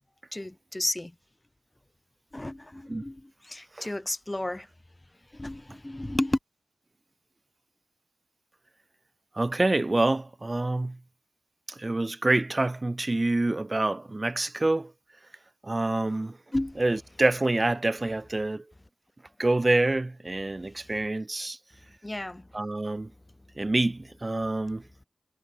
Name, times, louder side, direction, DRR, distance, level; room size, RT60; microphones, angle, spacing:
voice 1, 0.3-1.1 2.3-4.7 5.3-6.4 16.5-16.8 22.0-22.5, left 1 dB, 20° left, 0.8 m, -32 dB
voice 2, 9.4-11.0 11.7-14.9 15.6-16.4 16.8-18.6 19.4-21.6 22.5-23.1 23.6-24.8, right 2 dB, 35° right, 0.4 m, -26 dB
cardioid pair, 45°, 0 cm